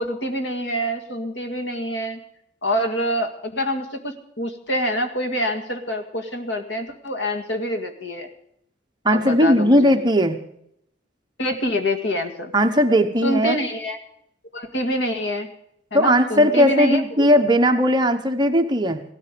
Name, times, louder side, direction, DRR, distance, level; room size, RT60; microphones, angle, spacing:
voice 1, 0.0-2.2 2.6-8.3 9.1-10.0 11.4-12.5 13.2-14.0 14.5-15.5 15.9-17.3, equal, 70° left, 6 dB, 2.0 m, -26 dB
voice 2, 9.0-10.4 12.5-13.6 15.9-19.0, equal, 25° right, 5 dB, 1.1 m, -17 dB
17.0 x 13.0 x 5.2 m, 0.74 s
head